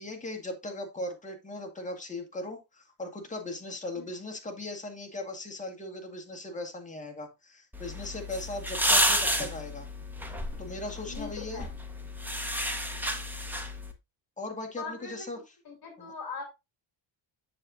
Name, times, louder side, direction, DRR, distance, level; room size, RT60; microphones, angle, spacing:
voice 1, 0.0-9.9 10.6-11.7 14.4-15.4 16.0-16.1, left 2 dB, 15° left, 2 dB, 1.7 m, -38 dB
sound 1, 7.7-13.9, equal, 5° right, 1.0 m, -31 dB
voice 2, 11.0-11.7 13.0-13.3 14.8-15.3 15.6-16.4, left 4 dB, 45° left, 3 dB, 2.7 m, -41 dB
7.7 x 7.0 x 2.5 m, 0.23 s
cardioid pair, 135°, 49 cm